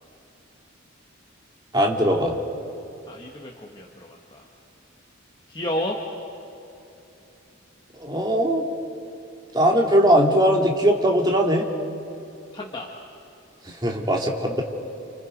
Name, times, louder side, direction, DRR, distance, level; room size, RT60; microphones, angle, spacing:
voice 1, 1.7-2.3 8.0-8.6 9.5-11.7 13.8-14.6, equal, 20° right, 0 dB, 2.5 m, -20 dB
voice 2, 3.1-4.4 5.5-6.0 12.5-12.9, left 1 dB, 25° left, -1 dB, 1.6 m, -31 dB
30.0 x 29.0 x 5.3 m, 2.8 s
head